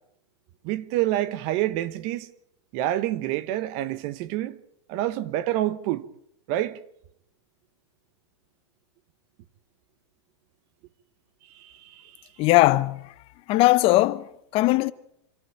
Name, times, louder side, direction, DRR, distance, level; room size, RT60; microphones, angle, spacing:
voice 1, 0.6-2.3 2.7-4.6 4.9-6.0 6.5-6.8 11.5-12.2, right 14 dB, 45° right, 1.1 m, -27 dB
voice 2, 12.4-13.1 13.5-14.9, left 18 dB, 40° left, 0.8 m, -20 dB
26.5 x 13.5 x 8.7 m
hypercardioid pair, 130°, 15 cm